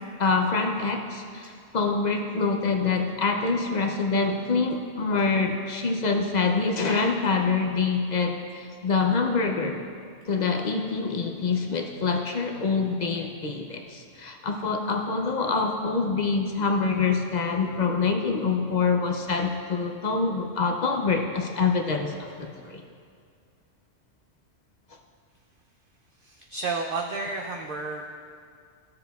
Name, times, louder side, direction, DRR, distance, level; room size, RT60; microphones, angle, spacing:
voice 1, 0.2-9.8 10.3-22.8, left 4 dB, 55° left, 3 dB, 0.5 m, -25 dB
voice 2, 26.2-28.1, right 3 dB, 60° right, 1 dB, 0.6 m, -31 dB
14.5 x 6.7 x 2.3 m, 2.2 s
omnidirectional pair, 1.3 m